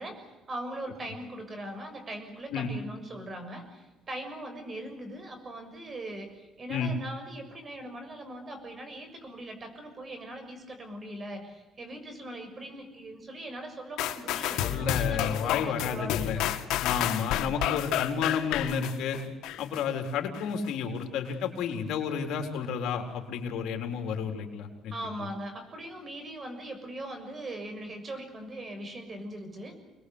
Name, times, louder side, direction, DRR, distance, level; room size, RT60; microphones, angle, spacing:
voice 1, 0.0-16.5 24.9-29.8, right 1 dB, 30° right, 7 dB, 6.6 m, -40 dB
sound 1, 14.0-19.8 20.3-20.4, left 12 dB, 85° left, 2.1 m, -30 dB
voice 2, 14.6-16.4 16.8-19.2 19.6-25.3, left 6 dB, 70° left, 3 dB, 4.1 m, -31 dB
27.0 x 21.0 x 8.2 m, 1.1 s
cardioid pair, 140°, 0 cm